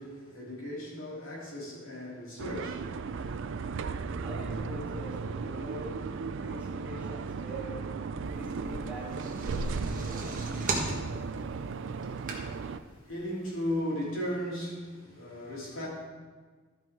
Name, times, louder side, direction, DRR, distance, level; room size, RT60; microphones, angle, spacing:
voice 1, 0.0-3.4 13.0-15.9, equal, 70° left, 3.0 m, -36 dB
sound 1, 2.4-12.8, right 4 dB, 65° right, 0.4 m, -36 dB
voice 2, 4.2-6.0 6.3-7.9 8.3-10.8, equal, 5° right, 2.3 m, -44 dB
sound 2, 8.9-12.8 13.3-13.4 13.6-13.7, right 3 dB, 40° right, 1.4 m, -36 dB
13.5 x 5.4 x 4.6 m
head